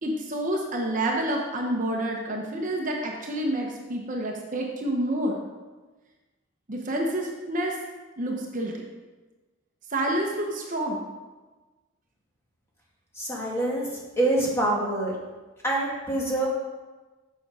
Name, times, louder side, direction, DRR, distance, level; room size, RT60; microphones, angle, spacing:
voice 1, 0.0-5.4 6.7-7.7 8.2-8.8 9.9-11.1, right 1 dB, 40° right, 0 dB, 0.9 m, -28 dB
voice 2, 13.1-13.9 14.2-15.1 15.6-16.5, right 2 dB, 10° left, -3 dB, 1.6 m, -25 dB
7.8 x 6.1 x 4.8 m, 1.2 s
head